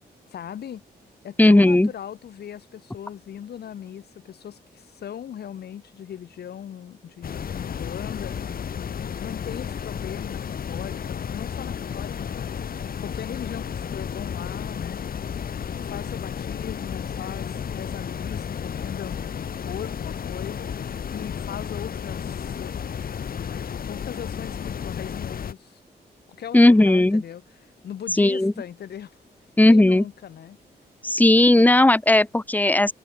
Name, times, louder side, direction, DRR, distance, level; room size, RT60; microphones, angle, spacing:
voice 1, 0.3-0.8 1.2-8.4 9.2-12.5 13.0-15.1 15.8-19.3 19.6-20.7 21.1-22.8 23.5-25.8 26.3-27.4 27.8-29.2 29.7-30.6, left 9 dB, 80° left, 3.2 m, -38 dB
voice 2, 1.4-1.9 26.5-27.2 28.2-28.5 29.6-30.0 31.0-32.9, left 1 dB, 10° left, 1.0 m, -16 dB
sound 1, 7.2-25.5, left 7 dB, 60° left, 2.9 m, -32 dB
cardioid pair, 95°, 17 cm